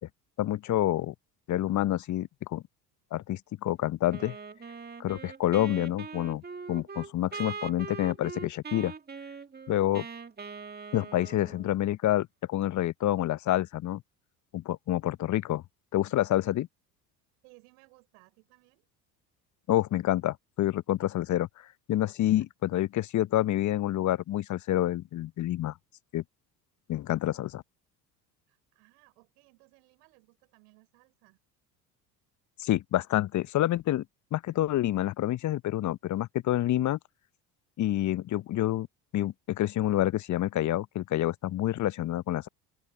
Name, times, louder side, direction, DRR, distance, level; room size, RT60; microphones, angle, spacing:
voice 1, 0.4-1.1 1.5-2.6 3.1-4.4 5.0-6.4 6.7-8.9 9.7-10.1 10.9-14.0 14.5-15.6 15.9-16.7 19.7-21.5 21.9-25.7 26.1-26.2 26.9-27.6 32.6-34.0 34.3-37.0 37.8-38.9 39.1-42.5, left 13 dB, 35° left, 0.9 m, -28 dB
Wind instrument woodwind instrument, 4.1-11.8, right 5 dB, 20° right, 2.1 m, -42 dB
voice 2, 17.4-18.9 28.5-31.4, right 32 dB, 65° right, 6.3 m, -61 dB
open air
figure-of-eight pair, 65°, 49 cm